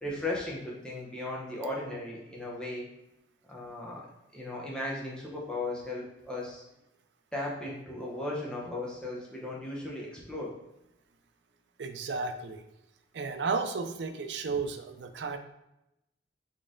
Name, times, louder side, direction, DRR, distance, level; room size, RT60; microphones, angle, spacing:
voice 1, 0.0-2.9 3.5-4.1 4.3-6.6 7.3-10.5, left 2 dB, 5° left, -4 dB, 0.8 m, -36 dB
voice 2, 11.8-12.6 13.1-15.4, right 4 dB, 75° right, 7 dB, 0.5 m, -33 dB
4.2 x 3.2 x 3.7 m, 0.88 s
head